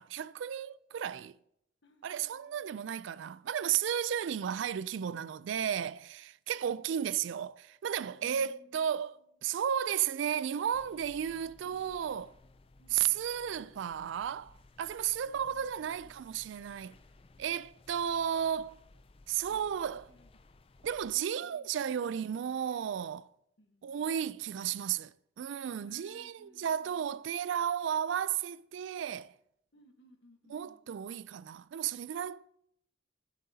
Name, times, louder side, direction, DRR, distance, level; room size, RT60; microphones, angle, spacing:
voice 1, 0.0-1.4 2.0-12.3 12.9-17.0 17.4-18.8 19.3-20.0 20.8-23.3 23.8-29.3 30.5-32.5, right 9 dB, 75° right, 0.3 m, -34 dB
voice 2, 1.8-2.9 6.5-7.1 8.2-9.3 12.8-13.3 15.2-16.3 19.5-20.6 21.4-22.2 23.6-23.9 25.8-27.3 29.7-31.1, left 1 dB, 65° left, 1.3 m, -63 dB
sound 1, 10.7-21.2, left 2 dB, 30° left, 0.4 m, -59 dB
15.5 x 7.5 x 2.8 m
head